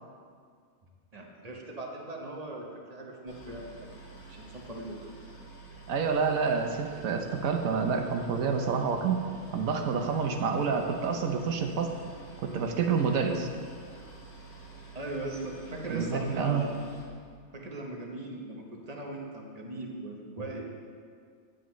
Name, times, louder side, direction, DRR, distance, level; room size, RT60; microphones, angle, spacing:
voice 1, 1.1-3.9 4.3-5.0 14.9-16.8 17.5-20.6, right 1 dB, 30° right, 0 dB, 0.9 m, -39 dB
Boat Water vehicle, 3.3-17.0, right 3 dB, 90° left, 2.5 m, -49 dB
voice 2, 5.9-9.2 9.5-11.9 12.4-13.5 15.9-16.6, right 5 dB, 70° right, 4 dB, 1.2 m, -28 dB
9.8 x 8.7 x 3.1 m, 2.1 s
omnidirectional pair, 1.5 m